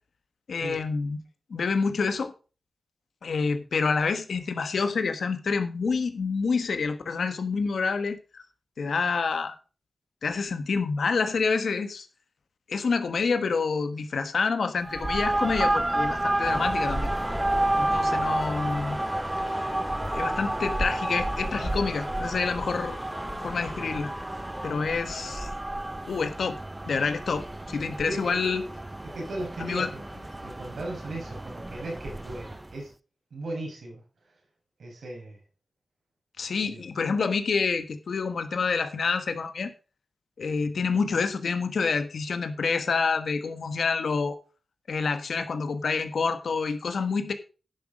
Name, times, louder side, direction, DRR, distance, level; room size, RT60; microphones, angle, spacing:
voice 1, 0.5-1.2 1.5-2.3 3.2-8.4 8.8-9.5 10.2-12.1 12.7-17.1 17.8-19.0 19.4-19.7 20.1-23.0 23.4-24.1 24.6-25.5 26.1-26.6 26.9-28.6 29.6-29.9 36.4-39.7 40.4-44.4 44.9-47.3, left 5 dB, 85° left, 9 dB, 1.3 m, -28 dB
sound 1, 14.8-32.7, right 1 dB, 15° right, 0.4 m, -31 dB
sound 2, 16.4-24.7, equal, ahead, 2.4 m, -37 dB
voice 2, 28.1-28.5 29.0-30.0 30.4-32.9 33.3-34.0 34.8-35.4 36.7-36.8, right 2 dB, 90° right, 0 dB, 5.3 m, -37 dB
10.5 x 7.4 x 5.2 m, 0.36 s
wide cardioid pair, 110°, 0 cm